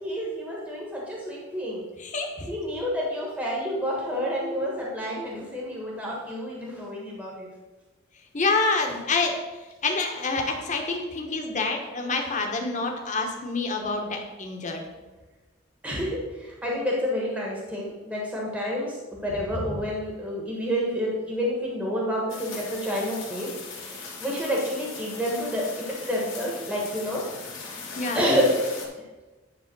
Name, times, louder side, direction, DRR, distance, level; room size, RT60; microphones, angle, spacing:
voice 1, 0.0-1.8 2.5-7.5 15.8-27.2 28.1-28.5, equal, 5° right, -3 dB, 1.3 m, -29 dB
voice 2, 2.0-2.5 8.3-9.4 9.8-14.8 28.0-28.2, left 3 dB, 40° left, 2 dB, 1.1 m, -27 dB
sound 1, 22.3-28.9, left 4 dB, 85° left, 2.1 m, -39 dB
10.0 x 3.5 x 6.1 m, 1.2 s
head